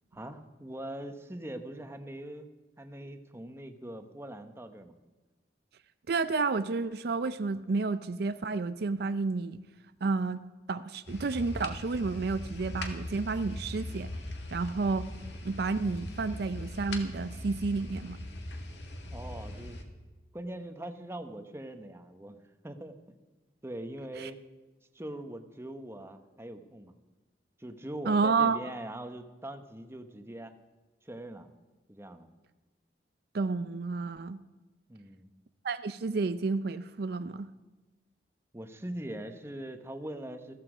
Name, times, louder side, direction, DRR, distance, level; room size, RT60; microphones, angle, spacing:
voice 1, 0.1-2.5 2.8-4.9 19.1-19.8 20.3-22.4 22.6-23.0 23.6-24.4 24.9-26.9 27.6-30.6 31.0-31.5 31.9-32.3 34.9-35.3 38.5-40.5, right 1 dB, 15° right, 7 dB, 1.0 m, -42 dB
voice 2, 6.1-9.6 10.0-10.4 10.7-14.1 14.5-15.1 15.4-18.2 24.2-24.3 28.1-28.6 33.3-34.4 35.6-37.5, right 4 dB, 60° right, 12 dB, 0.5 m, -30 dB
sound 1, 11.1-19.8, left 1 dB, 75° left, 2.0 m, -40 dB
15.0 x 14.0 x 5.0 m, 1.2 s
head